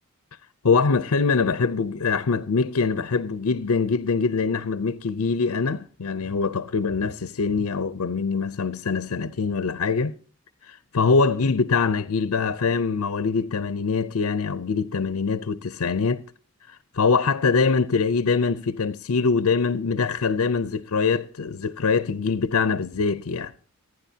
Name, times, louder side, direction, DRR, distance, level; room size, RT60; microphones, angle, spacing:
voice 1, 0.6-10.1 10.6-16.3 16.7-23.5, left 4 dB, 85° left, 0.6 m, -23 dB
26.5 x 9.7 x 2.8 m
head